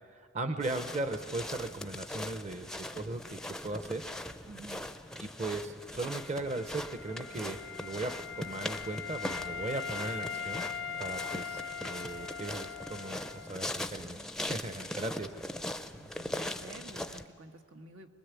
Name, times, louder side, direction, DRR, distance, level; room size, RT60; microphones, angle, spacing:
voice 1, 0.1-4.0 5.2-10.6 11.0-15.3, right 2 dB, 35° right, 9 dB, 0.8 m, -38 dB
sound 1, 0.6-17.2, left 1 dB, 5° left, 0.5 m, -41 dB
voice 2, 4.5-4.8 15.9-18.1, right 2 dB, 85° right, 5 dB, 1.5 m, -50 dB
Wind instrument woodwind instrument, 6.0-13.8, left 6 dB, 80° left, 0.5 m, -41 dB
25.0 x 20.5 x 8.3 m, 2.1 s
head